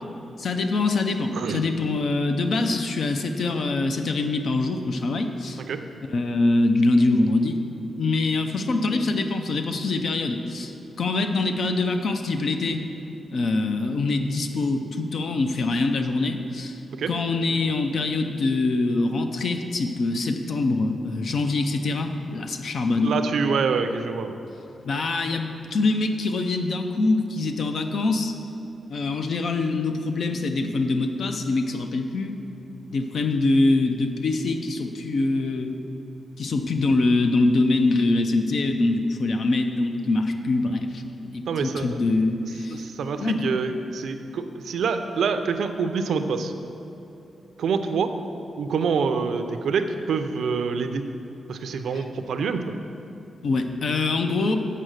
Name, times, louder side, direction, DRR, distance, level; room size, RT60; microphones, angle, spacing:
voice 1, 0.4-5.6 6.1-7.6 8.0-12.8 13.3-16.8 17.1-23.2 24.9-28.3 28.9-32.4 32.9-35.8 36.4-42.9 43.2-43.5 51.9-52.0 53.4-54.6, left 2 dB, 50° left, 6 dB, 0.5 m, -24 dB
voice 2, 23.0-24.4 41.5-42.0 42.7-46.5 47.6-48.1 48.6-51.0 51.5-52.6, right 5 dB, 75° right, 8 dB, 0.5 m, -26 dB
7.5 x 5.5 x 6.4 m, 2.9 s
wide cardioid pair, 180°, 0 cm